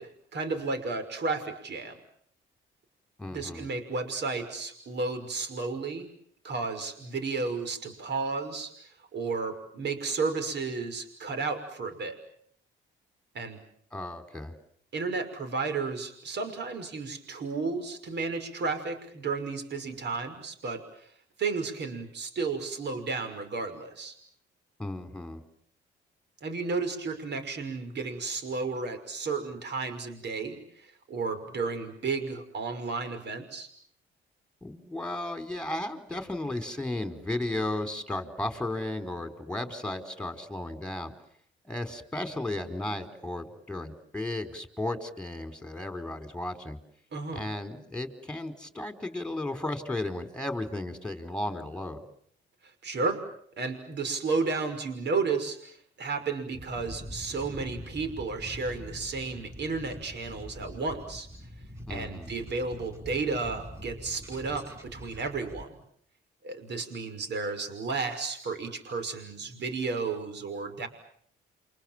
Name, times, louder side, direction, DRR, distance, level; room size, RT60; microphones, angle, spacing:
voice 1, 0.0-2.0 3.3-6.1 6.4-12.2 13.3-13.6 14.9-21.1 21.4-24.2 26.4-33.7 47.1-47.4 52.8-53.2 53.6-61.3 61.9-65.8 66.4-70.9, right 4 dB, 60° right, 9 dB, 5.9 m, -33 dB
voice 2, 3.2-3.7 13.9-14.5 24.8-25.4 34.6-41.1 41.6-46.8 47.3-52.0 61.9-62.3, left 1 dB, 5° left, 8 dB, 4.6 m, -34 dB
sound 1, 56.5-65.6, equal, 15° right, 6.4 m, -44 dB
29.0 x 26.5 x 7.6 m, 0.65 s
cardioid pair, 90°, 20 cm